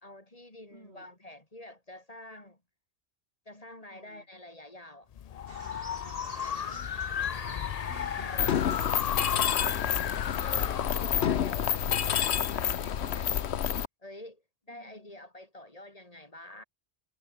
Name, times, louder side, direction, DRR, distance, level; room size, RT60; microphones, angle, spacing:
voice 1, 0.0-2.6 3.5-5.1 5.9-6.8 8.3-8.6 9.2-9.4 10.4-13.3 14.0-16.6, left 1 dB, 35° left, 3.5 m, -48 dB
voice 2, 0.7-1.1 3.8-4.3 6.2-7.5 7.9-9.9 14.7-15.1, right 1 dB, 80° right, 7.4 m, -54 dB
sound 1, 5.1-12.3, left 9 dB, 50° left, 0.5 m, -35 dB
sound 2, 5.5-10.5, right 1 dB, 60° right, 7.4 m, -47 dB
Mechanisms, 8.4-13.8, left 9 dB, 90° left, 1.1 m, -28 dB
omnidirectional pair, 1.1 m